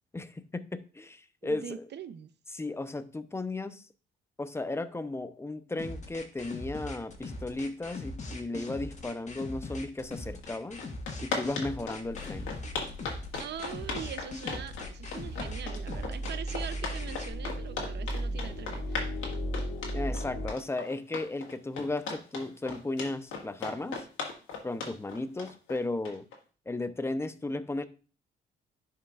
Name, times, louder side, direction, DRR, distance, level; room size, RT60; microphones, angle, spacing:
voice 1, 0.1-1.9 2.5-3.8 4.4-10.8 11.2-12.5 19.9-24.1 24.6-26.3 26.7-27.8, left 2 dB, 15° left, 0.6 m, -35 dB
voice 2, 1.4-2.3 13.4-19.1, right 9 dB, 60° right, 0.7 m, -42 dB
sound 1, 5.8-17.3, left 2 dB, 35° left, 1.5 m, -41 dB
sound 2, 10.4-10.5 10.8-26.4, left 4 dB, 85° left, 1.8 m, -37 dB
sound 3, 12.0-20.5, equal, 55° left, 1.5 m, -37 dB
11.0 x 4.7 x 2.4 m
cardioid pair, 90°, 20 cm